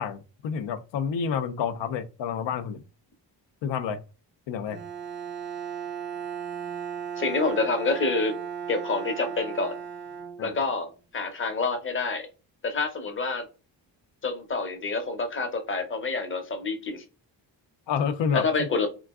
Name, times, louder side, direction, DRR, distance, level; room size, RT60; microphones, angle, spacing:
voice 1, 0.0-2.8 3.6-4.0 4.5-4.8 10.4-10.6 17.9-18.7, left 7 dB, 85° left, 0.6 m, -29 dB
Bowed string instrument, 4.7-10.8, right 7 dB, 30° right, 0.4 m, -36 dB
voice 2, 7.2-8.3 8.7-9.7 10.4-12.3 12.6-13.5 14.2-17.0 18.3-18.9, left 3 dB, 30° left, 0.7 m, -27 dB
3.8 x 2.4 x 2.3 m
cardioid pair, 120°, 43 cm